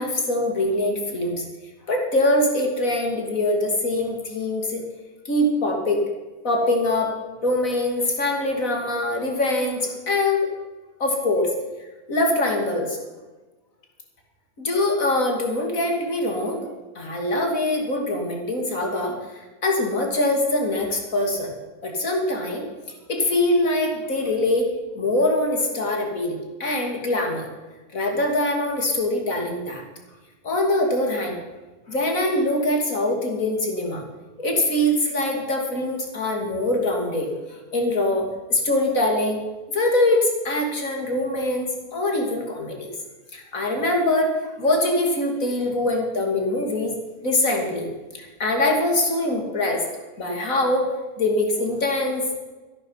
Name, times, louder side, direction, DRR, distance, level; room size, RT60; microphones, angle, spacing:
voice 1, 0.0-1.4 1.9-4.8 5.2-6.0 6.4-7.1 7.4-10.5 11.0-11.5 12.1-13.0 14.6-16.7 16.9-21.5 21.8-22.7 23.1-24.7 25.0-27.5 27.9-29.8 30.4-31.4 31.9-34.0 34.4-39.4 39.7-42.9 43.3-44.3 44.6-46.9 47.2-47.9 48.1-49.8 50.2-50.9 51.2-52.4, left 1 dB, 65° left, 2 dB, 3.1 m, -23 dB
14.0 x 11.5 x 5.7 m, 1.2 s
omnidirectional pair, 1.6 m